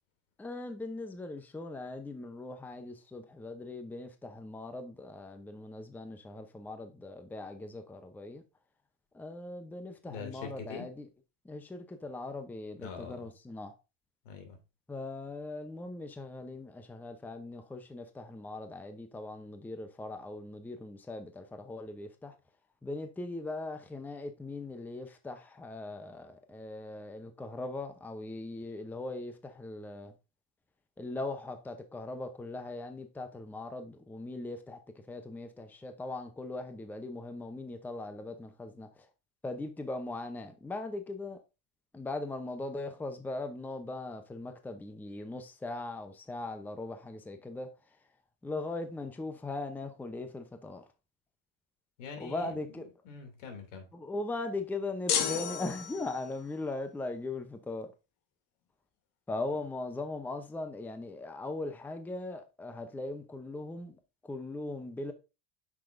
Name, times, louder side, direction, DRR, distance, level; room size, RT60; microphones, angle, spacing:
voice 1, 0.4-8.4 9.1-11.1 11.4-13.7 14.9-22.3 22.8-30.1 31.0-34.8 35.1-39.1 39.4-41.4 41.9-47.7 48.4-50.8 52.2-52.9 53.9-57.9 59.3-65.1, left 2 dB, 5° left, 0.6 m, -39 dB
voice 2, 10.0-10.9 12.8-13.3 14.2-14.6 52.0-52.5 53.0-53.9, left 5 dB, 80° left, 2.7 m, -43 dB
sound 1, 55.1-56.4, left 8 dB, 55° left, 1.3 m, -32 dB
8.3 x 6.0 x 2.6 m
supercardioid pair, 125°, 37 cm